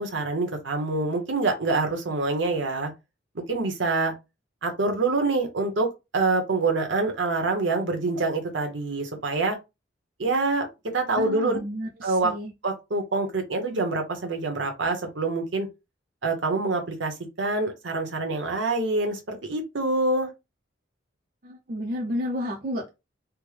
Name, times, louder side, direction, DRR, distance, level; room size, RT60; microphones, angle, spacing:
voice 1, 0.0-2.9 3.3-4.1 4.6-5.9 6.1-9.6 10.2-10.7 10.9-11.6 12.0-12.3 12.6-15.7 16.2-20.3, right 3 dB, 70° right, 0.9 m, -26 dB
voice 2, 11.2-12.5 21.4-22.9, equal, 45° right, 0.5 m, -31 dB
3.4 x 2.1 x 3.2 m
head